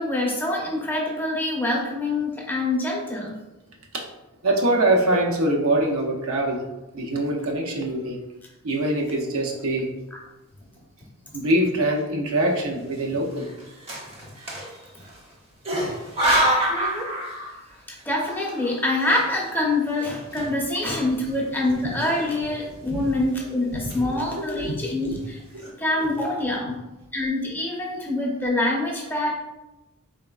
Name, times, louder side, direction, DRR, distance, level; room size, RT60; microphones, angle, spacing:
voice 1, 0.0-3.4 16.7-17.1 17.9-25.4 25.8-26.8 27.1-29.3, left 2 dB, 10° left, -2 dB, 0.6 m, -25 dB
voice 2, 4.4-6.6 6.9-8.2 8.6-9.9 11.3-13.5 15.7-15.9 22.9-23.0 24.0-24.8 25.5-25.7, right 1 dB, 70° right, 0 dB, 0.7 m, -24 dB
sound 1, 9.2-9.7 10.3-10.4 10.6-11.3 11.8-12.0 12.9-15.2 15.6-17.8 18.1-20.9 21.2-21.3 21.9-22.6 23.0-23.3 23.7-24.3 24.9-25.0 25.2-25.7, right 1 dB, 30° right, 0.7 m, -29 dB
4.0 x 3.5 x 2.3 m, 0.99 s
head